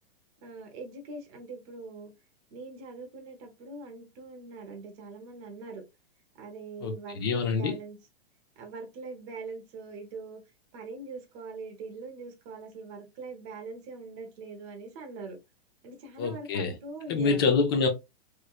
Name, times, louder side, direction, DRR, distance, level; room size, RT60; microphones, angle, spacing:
voice 1, 0.4-2.1 2.5-5.8 6.4-8.0 8.6-10.4 10.7-15.4 15.8-17.5, right 3 dB, 30° right, 0.9 m, -42 dB
voice 2, 6.8-7.8 16.2-16.8 17.1-17.9, left 5 dB, 25° left, 0.4 m, -26 dB
3.1 x 3.0 x 2.3 m
hypercardioid pair, 160°, 31 cm